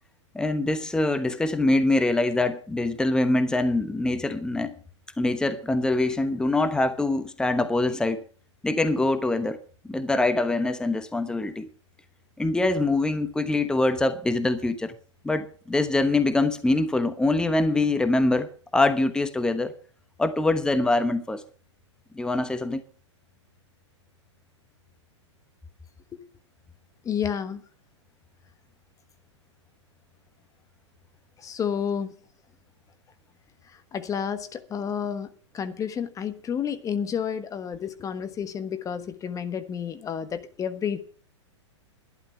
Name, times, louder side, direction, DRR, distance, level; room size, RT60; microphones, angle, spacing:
voice 1, 0.3-4.7 5.2-8.2 8.6-9.6 9.8-11.7 12.4-14.9 15.2-19.8 20.2-21.4 22.1-22.8, left 2 dB, 5° left, 1.0 m, -24 dB
voice 2, 27.0-27.6 31.4-32.1 33.9-41.0, left 7 dB, 20° left, 1.3 m, -30 dB
12.0 x 11.0 x 5.9 m
hypercardioid pair, 110°, 15 cm